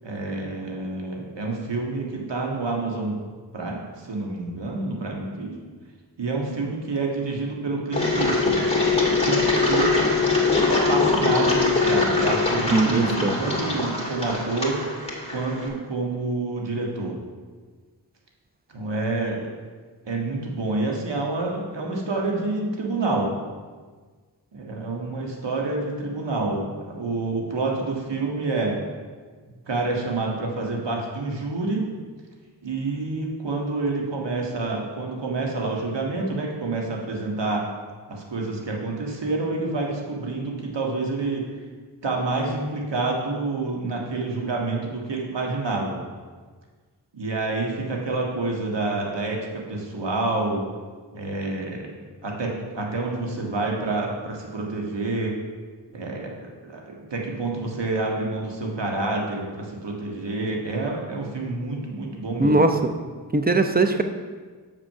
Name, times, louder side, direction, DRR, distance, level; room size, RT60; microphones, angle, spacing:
voice 1, 0.0-3.1 3.5-5.6 6.2-8.6 9.2-10.0 10.8-14.8 15.3-17.2 18.7-19.5 20.1-23.3 24.5-28.8 29.7-31.8 32.6-37.7 38.1-41.4 42.0-46.0 47.1-50.6 51.1-51.9 52.2-55.3 55.9-56.3 56.6-62.6, right 3 dB, 70° right, 0 dB, 1.7 m, -28 dB
Engine, 7.9-15.7, left 3 dB, 15° left, 2.2 m, -22 dB
voice 2, 12.7-13.3 62.4-62.9 63.3-64.0, right 2 dB, 20° right, 7 dB, 0.8 m, -20 dB
6.7 x 6.2 x 5.6 m, 1.5 s
cardioid pair, 40°, 44 cm